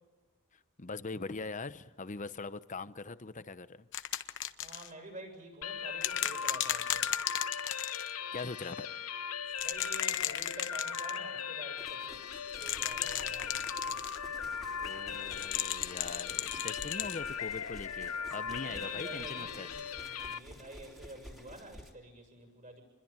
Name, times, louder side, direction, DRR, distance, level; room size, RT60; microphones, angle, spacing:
voice 1, 0.5-3.9 8.3-8.9 14.8-19.7, left 3 dB, 35° left, 0.9 m, -42 dB
sound 1, 3.9-4.9 6.0-8.1 9.5-11.2 12.5-14.2 15.3-17.2 18.3-18.4, left 12 dB, 60° left, 1.0 m, -35 dB
voice 2, 4.6-7.1 9.6-14.0 18.6-22.8, right 1 dB, 35° right, 7.1 m, -49 dB
sound 2, 5.6-20.4, left 7 dB, 85° left, 0.8 m, -39 dB
sound 3, 11.8-21.9, equal, ahead, 3.2 m, -52 dB
28.5 x 21.5 x 9.0 m
head